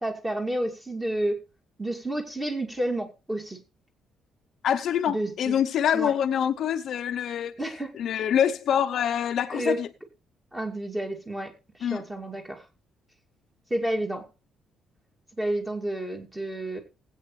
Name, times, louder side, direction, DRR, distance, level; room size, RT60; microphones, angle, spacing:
voice 1, 0.0-1.4 1.8-3.6 5.1-5.6 5.9-6.1 7.6-8.0 9.5-9.8 10.5-11.5 11.8-12.6 13.7-14.3 15.4-16.8, right 1 dB, 10° right, 2.5 m, -30 dB
voice 2, 4.6-7.5 8.0-9.9 11.8-12.0, left 9 dB, 55° left, 0.7 m, -25 dB
19.5 x 8.6 x 3.2 m
cardioid pair, 160°, 0 cm